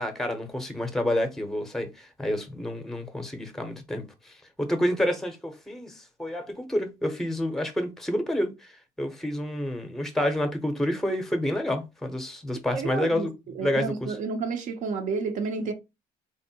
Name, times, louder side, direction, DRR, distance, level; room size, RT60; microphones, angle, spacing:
voice 1, 0.0-13.3 13.6-14.2, left 1 dB, 5° left, 0.6 m, -29 dB
voice 2, 12.7-13.3 13.6-15.7, right 4 dB, 60° right, 0.5 m, -30 dB
3.5 x 2.1 x 2.7 m
cardioid pair, 105°, 15 cm